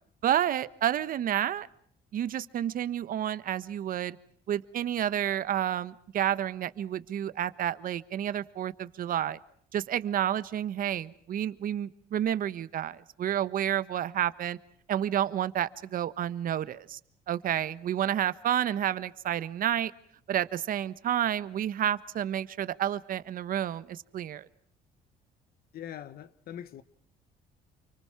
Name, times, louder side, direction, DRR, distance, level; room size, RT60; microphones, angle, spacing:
voice 1, 0.2-1.7 2.1-4.2 4.5-9.4 9.7-14.6 14.9-17.0 17.3-19.9 20.3-24.5, right 10 dB, 55° right, 1.3 m, -30 dB
voice 2, 25.7-26.8, left 10 dB, 65° left, 1.4 m, -42 dB
29.0 x 24.5 x 5.9 m
cardioid pair, 110°, 17 cm